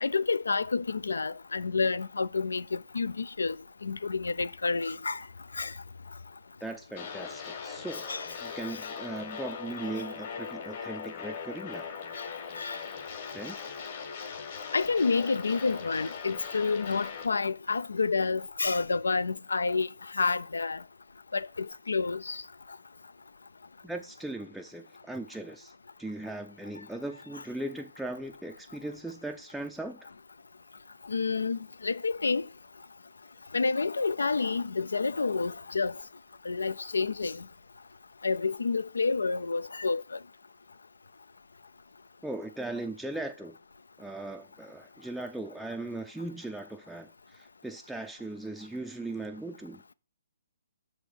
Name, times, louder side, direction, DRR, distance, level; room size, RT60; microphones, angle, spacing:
voice 1, 0.0-5.2 5.5-5.7 8.1-8.3 12.2-12.3 12.5-12.8 14.7-20.8 21.3-22.4 31.1-32.5 33.5-35.9 36.5-37.4 38.2-40.2, left 4 dB, 80° left, 0.3 m, -29 dB
voice 2, 6.6-8.1 8.4-11.9 13.3-13.6 23.8-25.7 26.0-30.1 42.2-43.6 44.0-49.8, right 2 dB, ahead, 0.4 m, -38 dB
sound 1, 6.9-17.3, left 6 dB, 50° left, 1.5 m, -40 dB
6.4 x 3.4 x 6.1 m
figure-of-eight pair, 135°, 0 cm